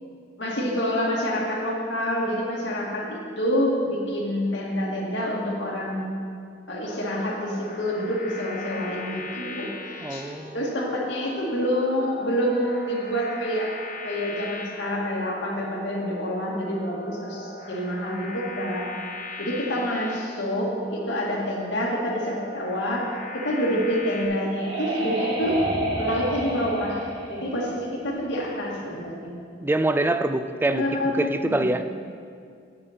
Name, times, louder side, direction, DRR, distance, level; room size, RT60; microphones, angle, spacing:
voice 1, 0.4-6.1 6.7-9.7 10.1-10.2 10.5-13.7 14.0-18.8 19.4-23.0 23.3-25.6 26.0-29.3 30.6-31.7, equal, 80° left, -3 dB, 1.9 m, -27 dB
sound 1, 6.8-24.3, left 2 dB, 45° left, 1.2 m, -39 dB
voice 2, 10.0-10.6 29.6-31.8, right 2 dB, 10° right, 9 dB, 0.3 m, -25 dB
sound 2, 24.0-28.6, right 1 dB, 70° right, 2.0 m, -30 dB
9.0 x 8.6 x 4.3 m, 2.2 s
head